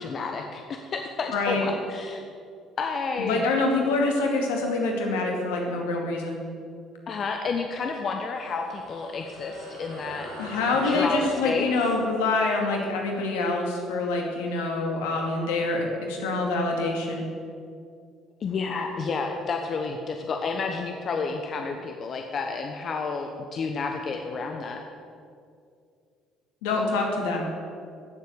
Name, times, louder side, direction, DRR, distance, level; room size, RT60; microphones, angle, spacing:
voice 1, 0.0-2.2 2.8-3.4 7.1-10.3 10.8-11.7 18.4-24.8, left 4 dB, 50° left, 3 dB, 1.2 m, -30 dB
voice 2, 1.3-1.7 3.3-6.4 10.4-17.2 26.6-27.4, left 3 dB, 80° left, 1 dB, 2.4 m, -26 dB
sound 1, 8.2-15.1, right 1 dB, 85° right, 3.3 m, -43 dB
16.0 x 7.7 x 7.0 m, 2.4 s
hypercardioid pair, 55°, 0 cm